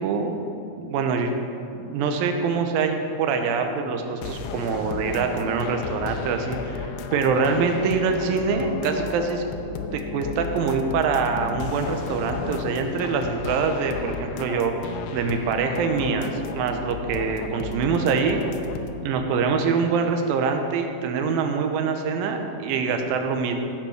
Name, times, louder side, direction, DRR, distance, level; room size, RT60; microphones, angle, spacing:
voice 1, 0.0-0.3 0.8-1.3 1.7-9.4 9.9-14.7 15.1-18.4 19.0-23.5, right 5 dB, 70° right, 5 dB, 2.5 m, -24 dB
sound 1, 4.2-19.0, left 6 dB, 85° left, 2.7 m, -34 dB
16.5 x 6.0 x 6.5 m, 2.7 s
omnidirectional pair, 4.7 m